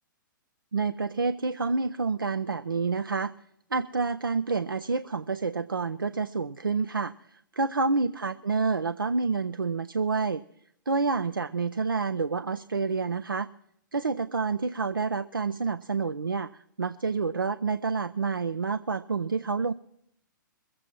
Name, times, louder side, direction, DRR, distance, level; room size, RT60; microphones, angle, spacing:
voice 1, 0.7-3.3 3.7-10.4 10.9-13.5 13.9-19.7, right 4 dB, 90° right, 13 dB, 0.4 m, -28 dB
21.5 x 7.7 x 6.0 m, 0.72 s
figure-of-eight pair, 115°, 11 cm